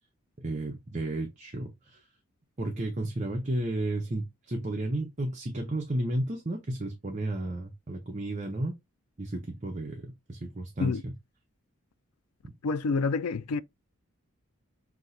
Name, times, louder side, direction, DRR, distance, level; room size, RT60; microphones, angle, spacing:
voice 1, 0.4-2.0 2.6-8.8 9.2-11.1, right 1 dB, 35° right, 0.7 m, -33 dB
voice 2, 12.6-13.6, left 4 dB, 90° left, 0.4 m, -28 dB
6.0 x 2.8 x 2.6 m
head